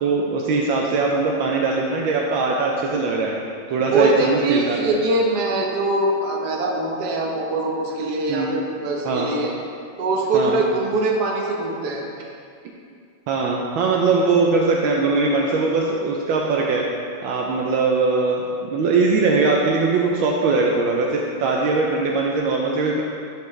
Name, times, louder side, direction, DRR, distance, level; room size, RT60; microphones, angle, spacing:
voice 1, 0.0-3.4 3.7-4.8 8.3-8.5 9.0-9.3 10.3-10.6 13.3-16.9 17.2-23.0, right 3 dB, 75° right, -1 dB, 1.4 m, -21 dB
voice 2, 3.9-9.5 10.0-12.1, right 2 dB, 60° right, -1 dB, 1.4 m, -22 dB
11.5 x 5.1 x 3.2 m, 2.3 s
omnidirectional pair, 2.2 m